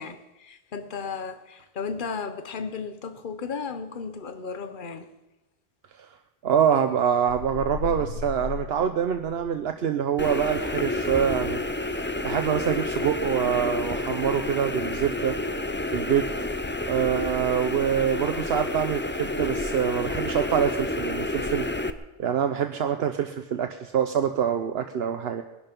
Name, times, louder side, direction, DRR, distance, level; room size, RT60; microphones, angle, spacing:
voice 1, 0.0-5.1, left 5 dB, 55° left, 1.1 m, -34 dB
voice 2, 6.4-11.6 11.9-15.4 15.9-16.3 16.9-21.7 22.2-25.4, right 8 dB, 75° right, 1.0 m, -25 dB
sound 1, 7.3-9.7, left 7 dB, 80° left, 0.9 m, -36 dB
sound 2, 10.2-21.9, left 2 dB, 15° left, 0.5 m, -29 dB
21.5 x 11.5 x 5.3 m
omnidirectional pair, 1.0 m